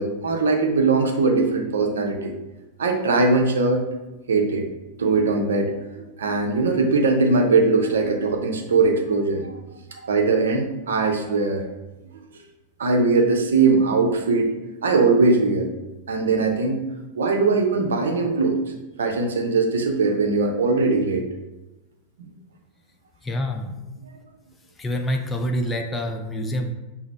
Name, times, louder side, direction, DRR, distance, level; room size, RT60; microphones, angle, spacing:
voice 1, 0.0-2.3 2.8-3.8 4.3-4.7 5.0-9.5 10.0-11.6 12.8-14.5 14.8-15.7 16.1-16.8 17.1-18.6 19.0-21.2, right 3 dB, 65° right, 3 dB, 0.6 m, -20 dB
voice 2, 23.2-23.7 24.8-26.7, equal, 15° left, 4 dB, 0.5 m, -26 dB
5.9 x 2.0 x 4.1 m, 1.0 s
figure-of-eight pair, 90°, 0 cm